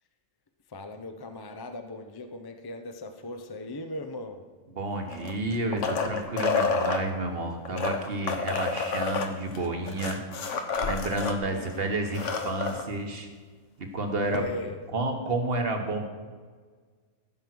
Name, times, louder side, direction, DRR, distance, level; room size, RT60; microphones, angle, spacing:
voice 1, 0.7-4.5 11.4-11.8 14.2-14.8, left 1 dB, 25° left, 7 dB, 0.5 m, -38 dB
voice 2, 4.7-10.2 10.8-13.3 13.8-14.5 14.9-16.1, right 2 dB, 45° right, 4 dB, 1.5 m, -30 dB
sound 1, 5.1-7.0 7.7-11.4 11.7-11.8 12.1-12.8 14.3-14.4, left 4 dB, 65° left, 1.2 m, -29 dB
15.0 x 5.3 x 6.1 m, 1.5 s
omnidirectional pair, 1.4 m